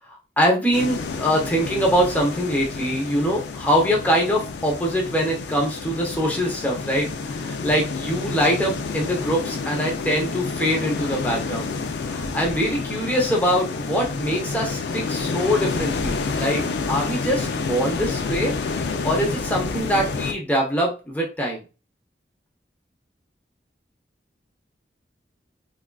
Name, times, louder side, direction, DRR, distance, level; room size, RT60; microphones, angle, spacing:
voice 1, 0.1-11.7 12.0-21.6, equal, 10° left, -1 dB, 0.7 m, -23 dB
sound 1, 0.7-20.3, left 4 dB, 80° left, 0.4 m, -29 dB
3.5 x 2.4 x 2.3 m, 0.31 s
head